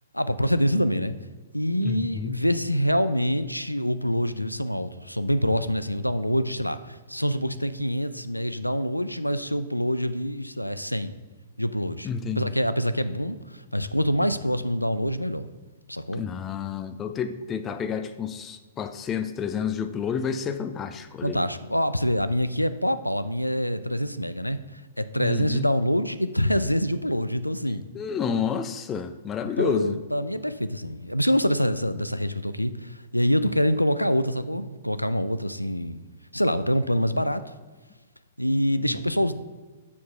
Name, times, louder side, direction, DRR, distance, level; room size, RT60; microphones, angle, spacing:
voice 1, 0.1-1.1 1.5-11.1 11.6-12.1 12.4-15.5 15.9-16.2 21.2-24.6 25.0-27.8 29.4-36.0 36.3-37.4 38.4-39.3, equal, 90° left, 13 dB, 0.4 m, -25 dB
voice 2, 1.8-2.4 12.0-12.5 16.1-21.4 25.2-25.7 27.9-30.0 38.8-39.0, left 6 dB, 20° left, 10 dB, 0.5 m, -30 dB
7.0 x 4.7 x 5.6 m, 1.3 s
figure-of-eight pair, 110°, 0 cm